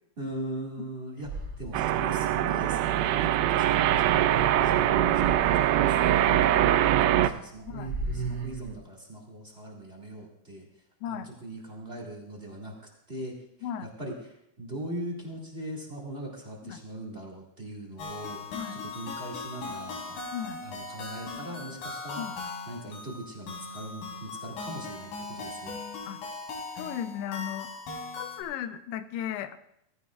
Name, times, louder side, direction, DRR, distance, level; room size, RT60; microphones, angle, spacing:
voice 1, 0.2-4.2 4.6-10.7 11.0-12.7 13.1-13.3 14.0-18.6 18.8-20.2 20.6-22.2 22.7-25.8, right 1 dB, 30° right, -1 dB, 1.2 m, -40 dB
sound 1, 1.2-2.3 3.8-5.6 6.4-6.7 7.1-7.2 7.5-8.7, right 3 dB, 45° right, 1.9 m, -37 dB
sound 2, 1.7-7.3, right 12 dB, 80° right, 2.2 m, -23 dB
sound 3, 18.0-28.4, left 3 dB, 60° left, 4.3 m, -39 dB
voice 2, 20.3-20.6 22.2-22.4 26.1-26.2 26.8-27.7 28.2-29.6, left 9 dB, 85° left, 9 dB, 2.8 m, -36 dB
18.5 x 15.0 x 2.4 m, 0.75 s
omnidirectional pair, 4.7 m